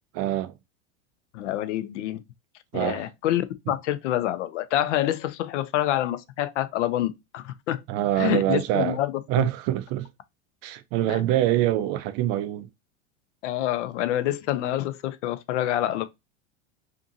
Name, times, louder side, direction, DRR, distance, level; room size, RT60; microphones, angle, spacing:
voice 1, 0.1-0.5 2.7-3.1 7.9-9.0 9.3-10.1 10.6-12.7, right 13 dB, 45° right, 0.4 m, -25 dB
voice 2, 1.3-2.2 2.7-7.8 8.2-9.1 9.4-9.5 11.1-11.2 13.4-16.1, left 13 dB, 75° left, 0.5 m, -27 dB
2.6 x 2.6 x 2.6 m
hypercardioid pair, 110°, 37 cm